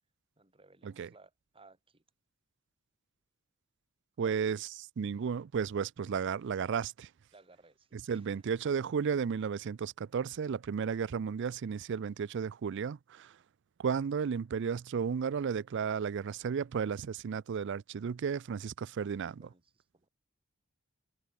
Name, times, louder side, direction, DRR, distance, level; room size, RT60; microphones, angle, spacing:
voice 1, 0.4-2.0 4.2-4.3 7.3-8.4 19.4-20.1, right 3 dB, 25° right, 3.3 m, -60 dB
voice 2, 4.2-4.6 5.0-7.1 7.9-13.3 13.8-19.4, right 6 dB, 60° right, 0.4 m, -33 dB
head